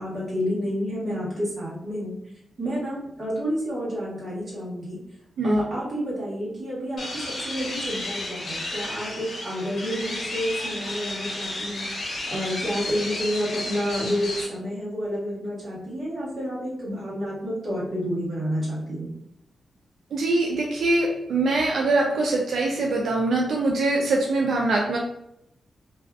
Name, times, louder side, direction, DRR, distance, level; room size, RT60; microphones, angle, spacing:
voice 1, 0.0-2.1 2.6-5.0 5.4-11.8 12.3-19.1, equal, 40° right, -7 dB, 1.2 m, -29 dB
sound 1, 7.0-14.4, left 2 dB, 55° left, 0.7 m, -32 dB
voice 2, 20.1-25.0, right 2 dB, 85° right, -1 dB, 0.4 m, -23 dB
2.5 x 2.3 x 2.2 m, 0.79 s
wide cardioid pair, 180°, 0 cm